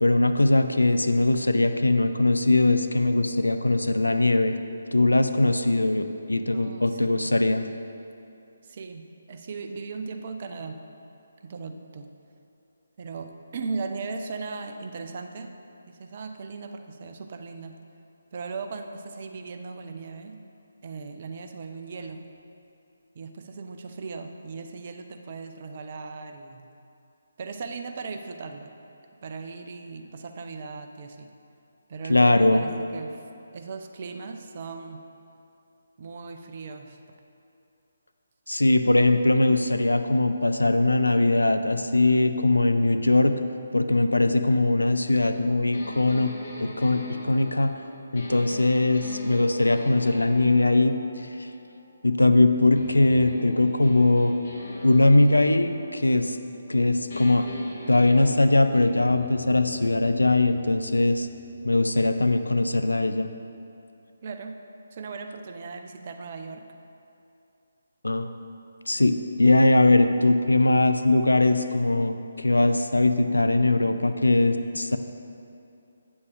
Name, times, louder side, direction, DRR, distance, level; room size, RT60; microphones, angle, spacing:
voice 1, 0.0-4.5 4.9-7.6 32.1-32.6 38.5-43.4 43.7-46.3 46.6-47.8 48.1-51.5 52.0-54.3 54.8-56.4 56.7-57.5 57.9-61.3 61.6-63.3 68.0-68.3 68.9-75.0, left 2 dB, 75° left, 8 dB, 0.4 m, -21 dB
voice 2, 6.5-7.4 8.6-10.8 11.4-12.1 13.0-15.5 15.9-17.8 18.3-20.4 20.8-22.3 23.1-26.7 27.4-28.8 29.2-31.3 31.9-33.2 33.5-35.1 36.0-37.0 64.2-64.6 64.9-66.7, right 4 dB, 40° right, 6 dB, 0.5 m, -38 dB
sound 1, 45.7-52.3 52.7-56.8 57.1-62.8, left 2 dB, 45° left, 1.4 m, -41 dB
8.2 x 7.1 x 3.2 m, 2.7 s
figure-of-eight pair, 145°, 0 cm